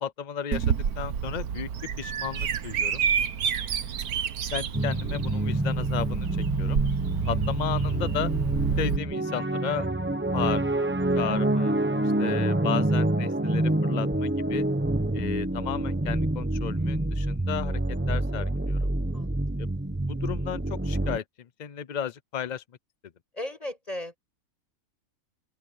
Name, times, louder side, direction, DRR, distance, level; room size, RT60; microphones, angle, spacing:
voice 1, 0.0-1.7 2.0-3.0 4.5-6.3 6.6-6.8 7.3-8.3 8.8-9.9 10.3-11.8 12.2-14.6 15.1-17.8 18.1-18.9 19.6-19.7 20.1-21.2 21.6-22.6, left 8 dB, 60° left, 0.4 m, -34 dB
Bird vocalization bird call bird song, 0.5-9.0, right 7 dB, 80° right, 1.6 m, -29 dB
voice 2, 3.7-4.3 11.9-12.5 19.1-19.4 23.3-24.2, left 1 dB, 25° left, 7.5 m, -39 dB
sound 1, 4.7-21.2, right 1 dB, 10° right, 0.9 m, -27 dB
open air
omnidirectional pair, 1.6 m